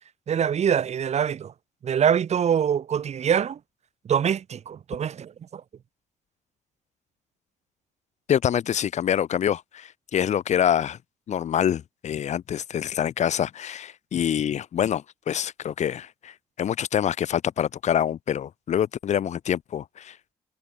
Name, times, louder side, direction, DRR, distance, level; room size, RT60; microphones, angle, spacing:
voice 1, 0.3-1.5 1.8-3.6 4.1-5.6, right 8 dB, 55° right, 2.7 m, -24 dB
voice 2, 8.3-11.0 11.3-20.2, left 9 dB, 55° left, 1.7 m, -26 dB
hypercardioid pair, 40°, 14 cm